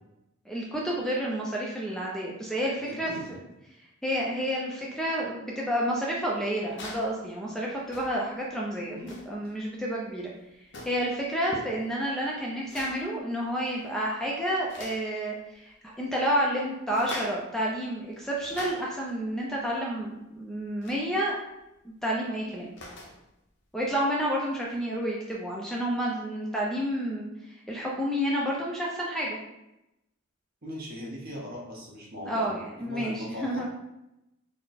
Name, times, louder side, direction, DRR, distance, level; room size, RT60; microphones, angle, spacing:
voice 1, 0.5-3.1 4.0-9.0 9.3-10.3 10.8-21.3 21.8-22.7 23.7-27.3 27.7-29.4 32.2-33.7, equal, ahead, -4 dB, 0.4 m, -30 dB
voice 2, 2.8-3.3 8.9-9.2 30.6-33.7, left 1 dB, 45° right, -3 dB, 1.1 m, -39 dB
sound 1, 6.6-7.2 7.8-8.3 9.0-9.4 10.7-11.1 12.6-13.1 13.6-14.0 14.3-15.1 16.9-17.5 18.1-19.1 20.8-21.1 22.5-23.2 24.7-24.8, left 2 dB, 60° left, 0.7 m, -43 dB
4.1 x 2.1 x 4.1 m, 0.89 s
head